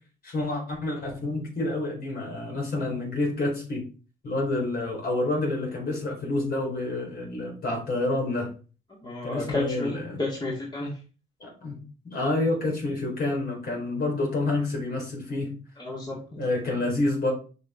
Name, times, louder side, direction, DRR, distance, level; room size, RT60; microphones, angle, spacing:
voice 1, 0.2-3.8 4.2-8.5 9.2-10.2 11.4-11.8 12.0-15.5 16.4-17.3, left 2 dB, 50° left, 0 dB, 4.2 m, -28 dB
voice 2, 9.0-10.9 15.8-16.4, left 2 dB, 20° left, -4 dB, 2.2 m, -31 dB
6.2 x 5.5 x 3.7 m, 0.36 s
cardioid pair, 90°, 20 cm